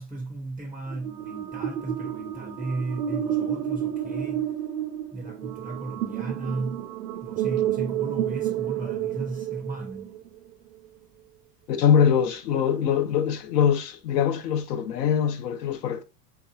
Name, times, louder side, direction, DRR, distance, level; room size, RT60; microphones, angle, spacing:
voice 1, 0.0-4.5 5.1-6.9 7.2-10.2, right 2 dB, 5° right, 0.4 m, -35 dB
sound 1, 0.9-10.3, right 11 dB, 75° right, 0.6 m, -30 dB
voice 2, 11.7-16.0, left 8 dB, 85° left, 0.7 m, -23 dB
3.3 x 2.8 x 2.2 m
hypercardioid pair, 95°, 47 cm